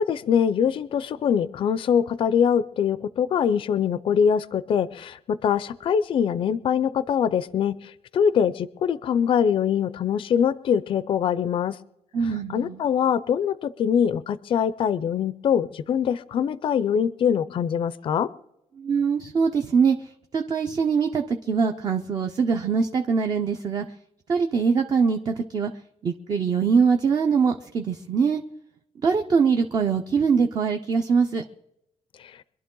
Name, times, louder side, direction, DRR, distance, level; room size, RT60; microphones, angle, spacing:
voice 1, 0.0-11.8 12.2-18.3 32.2-32.4, left 8 dB, 40° left, 16 dB, 0.5 m, -23 dB
voice 2, 12.1-12.8 18.8-20.0 20.3-23.8 24.3-25.7 26.0-28.4 29.0-31.4, right 5 dB, 30° right, 5 dB, 0.7 m, -23 dB
24.5 x 11.5 x 3.8 m, 0.85 s
cardioid pair, 175°, 13 cm